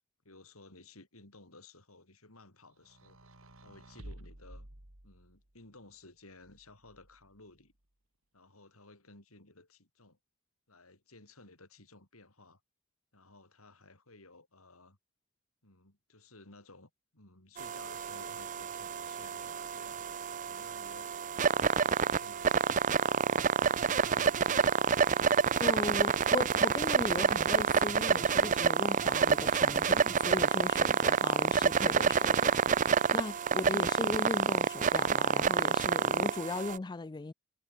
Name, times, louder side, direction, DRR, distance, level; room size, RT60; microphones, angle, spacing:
voice 1, 0.2-3.2 3.6-4.7 5.0-7.7 8.3-10.2 10.7-12.6 13.1-15.0 15.6-20.2 20.4-24.9, left 2 dB, 90° left, 7.1 m, -57 dB
sound 1, 2.8-5.5 6.4-7.4, right 1 dB, 75° right, 3.6 m, -52 dB
sound 2, 17.6-36.8, right 6 dB, 35° right, 0.5 m, -28 dB
voice 2, 25.6-37.3, left 3 dB, 20° left, 0.3 m, -38 dB
head